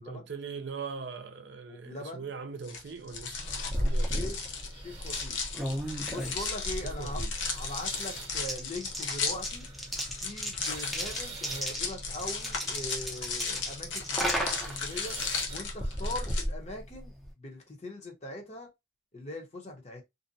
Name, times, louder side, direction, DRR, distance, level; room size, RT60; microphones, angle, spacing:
voice 1, 0.0-4.3 6.8-7.3, right 5 dB, 60° right, 0.4 m, -41 dB
voice 2, 1.7-2.3 3.8-4.4 4.7-5.4 6.1-7.2 7.5-9.7 10.2-15.2 15.5-18.7 19.1-20.0, left 1 dB, 35° left, 0.8 m, -41 dB
sound 1, 2.6-16.4, left 5 dB, 75° left, 0.7 m, -36 dB
sound 2, 3.3-17.3, equal, ahead, 0.5 m, -35 dB
sound 3, 3.4-16.3, right 3 dB, 30° right, 0.8 m, -48 dB
2.6 x 2.1 x 2.6 m
head